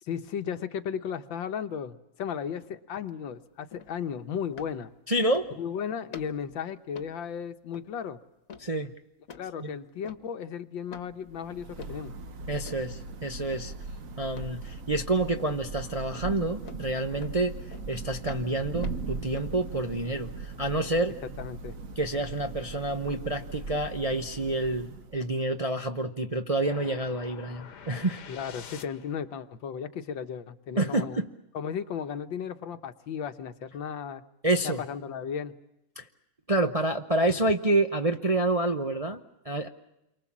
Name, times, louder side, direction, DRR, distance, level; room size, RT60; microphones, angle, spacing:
voice 1, 0.0-4.9 5.6-8.2 9.3-12.1 21.4-21.8 28.3-31.2 31.5-34.2 34.6-35.6, left 7 dB, 85° left, 9 dB, 1.9 m, -35 dB
sound 1, 3.7-3.9 4.5-4.8 5.3-5.7 6.1-6.5 6.9-7.2 7.7-7.9 8.5-8.7 9.3-9.5 10.0-10.3 10.9-11.1 11.8-12.0 12.6-12.9 13.5-13.8 14.3-14.6 16.1-16.3 16.6-16.8 17.2-17.4 17.7-17.9 18.2-19.5, left 6 dB, 50° left, 1.6 m, -47 dB
voice 2, 5.1-5.5 8.6-8.9 9.6-9.7 12.5-13.7 14.2-17.5 17.9-21.2 22.0-28.2 30.8-31.3 34.4-34.8 36.0-36.1 36.5-39.7, right 2 dB, 30° right, 5 dB, 0.6 m, -28 dB
Thunder / Rain, 11.1-25.5, right 4 dB, 50° right, 1.4 m, -39 dB
sound 2, 26.6-29.3, left 7 dB, 65° left, 1.7 m, -46 dB
28.5 x 24.0 x 7.4 m, 0.89 s
omnidirectional pair, 2.0 m